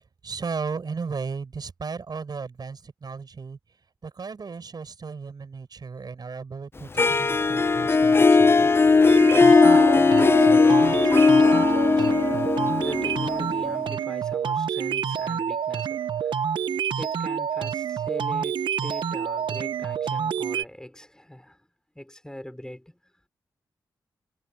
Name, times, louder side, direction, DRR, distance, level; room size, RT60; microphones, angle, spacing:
voice 1, 0.2-3.6 4.0-8.7, right 5 dB, 60° right, 5.8 m, -35 dB
Harp, 7.0-13.9, left 4 dB, 30° left, 0.4 m, -18 dB
sound 1, 9.1-20.6, right 7 dB, 80° right, 1.2 m, -28 dB
voice 2, 9.3-21.6 21.9-23.1, left 1 dB, 10° left, 6.1 m, -42 dB
cardioid pair, 60°, 8 cm